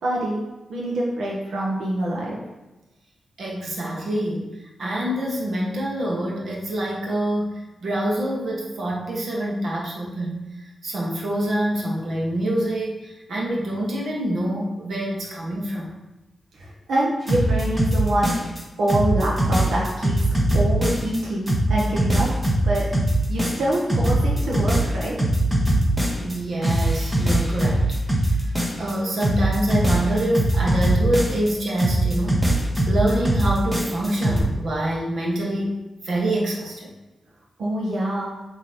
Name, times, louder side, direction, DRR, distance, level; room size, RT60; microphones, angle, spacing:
voice 1, 0.0-0.4 0.7-2.4 16.5-18.3 18.8-22.3 22.6-22.8 23.3-25.1 37.6-38.3, right 1 dB, 80° right, -4 dB, 1.1 m, -25 dB
voice 2, 3.4-10.4 10.8-15.9 26.2-27.9 28.4-28.5 28.8-32.5 32.9-35.8 36.0-36.9, right 1 dB, 60° right, -2 dB, 1.4 m, -26 dB
sound 1, 17.3-18.6 18.9-21.2 21.5-26.4 26.6-28.9 29.2-31.5 31.8-34.4, right 1 dB, 15° right, 1.1 m, -21 dB
7.7 x 3.1 x 4.2 m, 1.0 s
wide cardioid pair, 135°, 0 cm